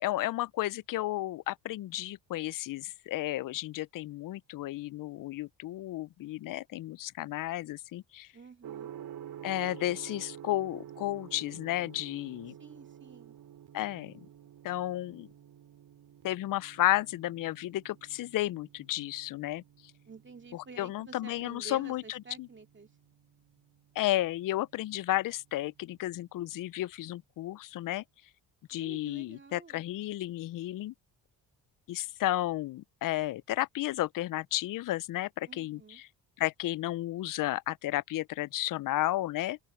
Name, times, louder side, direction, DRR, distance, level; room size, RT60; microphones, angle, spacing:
voice 1, 0.0-8.3 9.4-12.5 13.7-14.1 14.6-15.3 16.2-19.6 20.5-22.5 24.0-28.0 28.7-30.9 31.9-36.1 36.4-39.6, left 15 dB, 55° left, 0.5 m, -33 dB
voice 2, 8.3-8.9 12.6-13.4 20.1-22.9 28.7-29.8 35.5-36.0, right 4 dB, 30° right, 2.4 m, -50 dB
Gong, 8.6-26.5, right 10 dB, 60° right, 4.6 m, -51 dB
cardioid pair, 85°, 40 cm